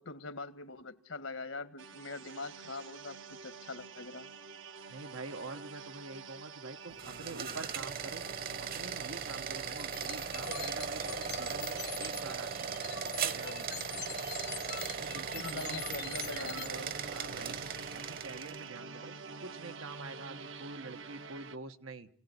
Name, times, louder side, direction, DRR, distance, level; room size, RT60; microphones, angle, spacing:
voice 1, 0.0-4.3 15.3-16.9, left 3 dB, 75° left, 1.7 m, -43 dB
sound 1, 1.8-21.6, right 5 dB, 65° right, 1.1 m, -48 dB
voice 2, 4.9-8.2 8.6-13.8 15.0-17.6 17.9-19.2 19.4-22.1, right 3 dB, 85° right, 1.4 m, -46 dB
sound 2, 6.9-18.7, right 6 dB, 45° right, 1.2 m, -38 dB
sound 3, 9.7-12.2 12.6-16.7, left 12 dB, 55° left, 1.1 m, -44 dB
27.5 x 18.5 x 9.8 m
head